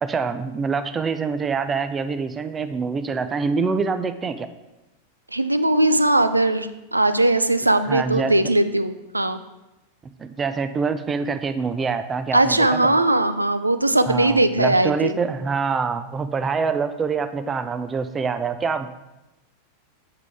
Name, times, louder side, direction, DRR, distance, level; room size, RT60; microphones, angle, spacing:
voice 1, 0.0-4.5 7.9-8.3 10.2-12.9 14.1-18.9, right 5 dB, 20° right, 10 dB, 0.4 m, -25 dB
voice 2, 5.3-9.4 12.3-15.1, right 2 dB, 85° right, 10 dB, 0.4 m, -19 dB
7.4 x 5.9 x 3.5 m, 0.99 s
figure-of-eight pair, 90°, 0 cm